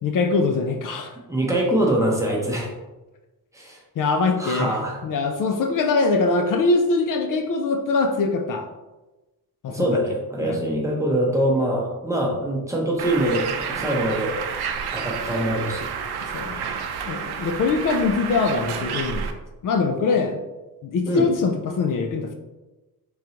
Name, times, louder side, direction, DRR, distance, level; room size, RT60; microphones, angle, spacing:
voice 1, 0.0-1.1 4.0-8.7 9.6-9.9 10.4-10.6 16.3-16.7 17.1-19.3 19.6-20.4 20.8-22.3, left 4 dB, 55° left, 5 dB, 0.5 m, -23 dB
voice 2, 1.3-2.7 3.5-3.8 4.4-5.0 9.7-14.3 14.9-15.9 21.1-21.3, right 1 dB, 10° right, -3 dB, 0.7 m, -23 dB
Bird, 13.0-19.3, right 7 dB, 85° right, 0.6 m, -30 dB
4.6 x 3.8 x 2.8 m, 1.1 s
wide cardioid pair, 180°, 38 cm